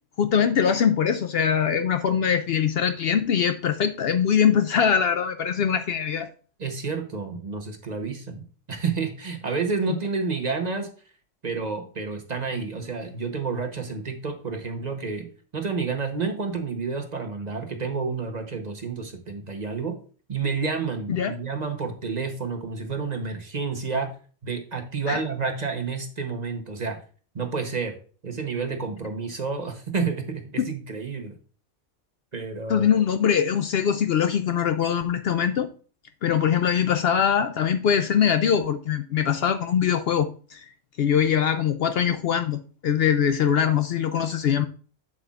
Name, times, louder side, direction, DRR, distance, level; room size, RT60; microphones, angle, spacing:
voice 1, 0.2-6.3 21.1-21.3 25.1-25.2 32.7-35.7 36.2-40.7 41.0-44.6, left 8 dB, 65° left, 9 dB, 0.7 m, -22 dB
voice 2, 6.6-10.9 11.4-15.3 15.5-20.0 20.3-24.1 24.4-27.0 27.3-27.9 28.2-31.4 32.3-32.9, right 4 dB, 40° right, 4 dB, 1.0 m, -30 dB
7.7 x 7.4 x 2.4 m, 0.40 s
omnidirectional pair, 1.2 m